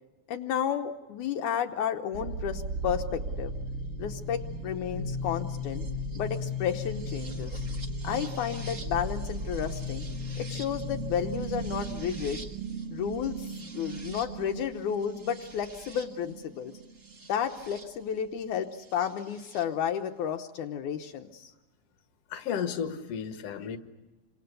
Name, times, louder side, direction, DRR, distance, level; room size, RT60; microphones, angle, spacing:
voice 1, 0.3-3.5 4.0-5.9 6.2-7.6 8.0-10.1 10.4-12.4 12.9-13.5 13.7-16.7 17.3-21.5 23.6-23.7, left 8 dB, 75° left, 5 dB, 2.4 m, -32 dB
sound 1, 2.1-17.9 19.0-19.6, equal, 35° right, 1.4 m, -36 dB
voice 2, 22.3-23.8, left 7 dB, 55° left, 7 dB, 2.3 m, -33 dB
29.0 x 26.5 x 6.7 m, 1.1 s
omnidirectional pair, 3.6 m